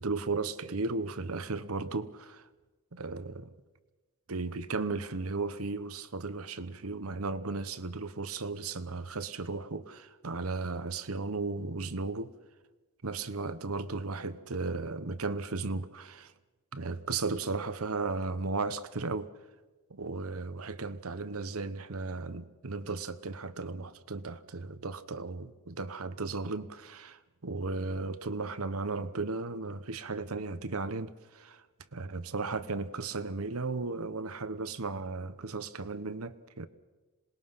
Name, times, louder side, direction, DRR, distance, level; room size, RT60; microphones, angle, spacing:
voice 1, 0.0-2.4 2.9-3.5 4.3-12.3 13.0-16.3 16.7-19.3 19.9-31.6 31.9-36.7, right 3 dB, 90° right, 1.1 m, -35 dB
26.5 x 20.0 x 5.8 m
head